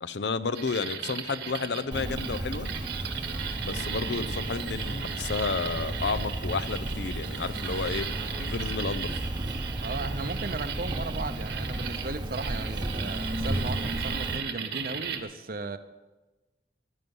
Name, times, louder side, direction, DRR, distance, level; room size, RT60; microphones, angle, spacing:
voice 1, 0.0-2.7 3.6-8.1 8.4-9.1, left 4 dB, 70° left, 14 dB, 0.6 m, -31 dB
sound 1, 0.5-15.2, right 7 dB, 75° right, 1.5 m, -37 dB
Cricket, 1.9-14.4, right 1 dB, 25° right, 0.8 m, -34 dB
voice 2, 9.8-15.8, right 3 dB, 55° right, 10 dB, 0.8 m, -36 dB
15.5 x 11.0 x 5.4 m, 1.2 s
head